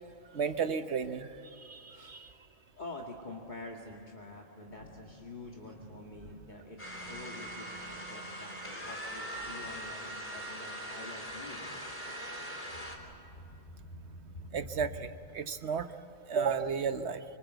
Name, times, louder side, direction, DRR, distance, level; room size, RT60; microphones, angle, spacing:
voice 1, 0.3-2.3 14.5-15.9 16.3-17.2, right 6 dB, 65° right, 10 dB, 1.3 m, -33 dB
Thunder, 1.7-15.4, equal, 55° left, 2.6 m, -53 dB
voice 2, 1.9-2.3 2.8-11.7, left 2 dB, 40° left, -1 dB, 2.2 m, -47 dB
sound 1, 6.8-13.0, right 1 dB, 10° left, 3.4 m, -41 dB
26.0 x 25.0 x 8.0 m, 2.9 s
omnidirectional pair, 1.3 m